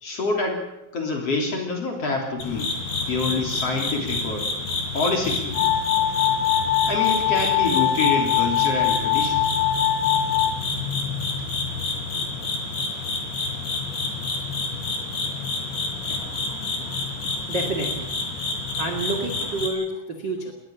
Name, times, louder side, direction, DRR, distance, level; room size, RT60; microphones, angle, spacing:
voice 1, 0.0-0.6 0.9-2.7 3.1-4.5 4.9-5.7 6.9-9.4 16.1-17.4, left 3 dB, 35° left, 2 dB, 3.7 m, -27 dB
sound 1, 2.4-19.7, left 3 dB, 65° left, 5.4 m, -29 dB
sound 2, 5.5-10.5, left 11 dB, 90° left, 4.0 m, -22 dB
voice 2, 17.5-18.1 18.8-20.5, right 2 dB, 40° right, 4 dB, 1.6 m, -28 dB
20.0 x 20.0 x 7.2 m, 0.90 s
omnidirectional pair, 5.8 m